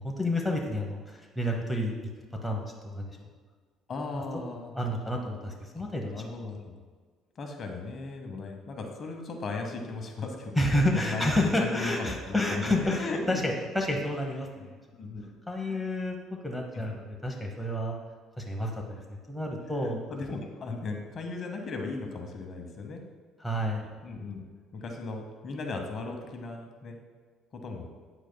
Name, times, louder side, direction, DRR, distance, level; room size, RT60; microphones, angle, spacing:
voice 1, 0.0-2.1 2.4-2.6 2.9-3.2 4.1-4.2 4.7-6.2 10.6-14.7 15.5-16.2 16.4-18.0 18.4-19.0 19.3-20.0 23.4-23.8, left 1 dB, 5° left, 0 dB, 0.8 m, -30 dB
voice 2, 3.9-4.7 6.1-6.8 7.4-13.4 14.9-15.8 16.7-16.9 19.8-23.0 23.6-23.7 24.0-24.5 24.7-27.0 27.5-27.9, left 3 dB, 40° left, 3 dB, 1.0 m, -37 dB
8.9 x 8.0 x 2.2 m, 1.5 s
cardioid pair, 130°, 0 cm